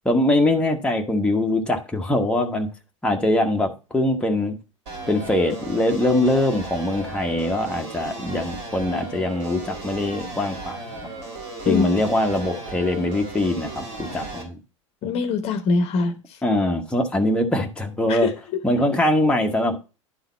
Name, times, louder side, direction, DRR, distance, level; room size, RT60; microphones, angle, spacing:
voice 1, 0.0-2.7 3.0-4.6 5.1-10.8 11.6-14.6 16.4-18.3 18.6-19.8, left 1 dB, 5° left, 2 dB, 1.0 m, -22 dB
sound 1, 4.9-14.4, right 2 dB, 70° right, 3.3 m, -36 dB
voice 2, 15.0-16.4 18.1-18.6, left 4 dB, 40° left, 9 dB, 0.9 m, -23 dB
11.0 x 3.9 x 4.1 m, 0.32 s
figure-of-eight pair, 80°, 17 cm